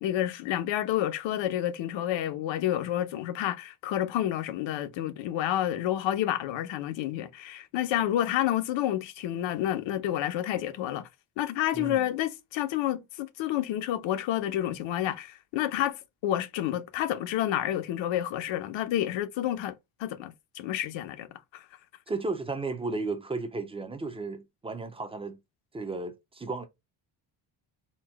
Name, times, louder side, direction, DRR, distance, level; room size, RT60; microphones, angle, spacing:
voice 1, 0.0-11.1 11.4-19.7 20.0-21.3 21.5-21.6, left 12 dB, 90° left, 0.8 m, -29 dB
voice 2, 11.7-12.1 22.1-25.4 25.7-26.6, right 3 dB, 15° right, 0.3 m, -34 dB
4.3 x 2.1 x 4.4 m
cardioid pair, 175°, 44 cm